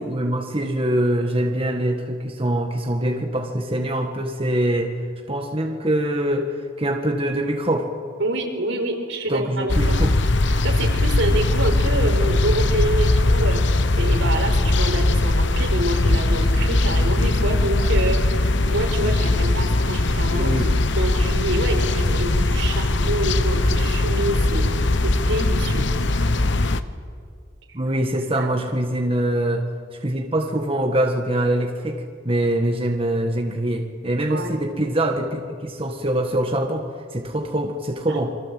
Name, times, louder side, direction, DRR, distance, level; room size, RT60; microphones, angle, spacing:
voice 1, 0.0-4.9 5.3-7.8 9.3-10.1 20.3-20.7 27.7-29.7 30.0-38.4, right 1 dB, 30° right, 2 dB, 1.7 m, -24 dB
voice 2, 8.2-10.2 10.5-20.7 21.0-24.8 25.0-25.8 28.4-28.5 34.3-34.5 38.1-38.2, right 1 dB, 80° right, 3 dB, 4.7 m, -27 dB
sound 1, 9.7-26.8, left 2 dB, 65° left, 1.1 m, -20 dB
28.0 x 24.0 x 7.8 m, 2.1 s
head